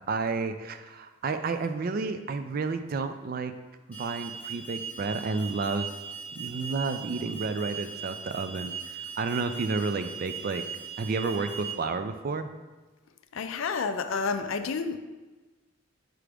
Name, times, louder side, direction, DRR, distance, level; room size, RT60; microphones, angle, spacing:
voice 1, 0.1-3.5 4.0-5.9 6.3-10.6 11.0-12.5, right 4 dB, 45° right, 9 dB, 0.3 m, -31 dB
Alarm, 3.9-11.7, right 6 dB, 5° left, 0.6 m, -39 dB
voice 2, 13.3-15.0, left 5 dB, 65° left, 9 dB, 0.4 m, -30 dB
6.2 x 4.8 x 3.4 m, 1.2 s
head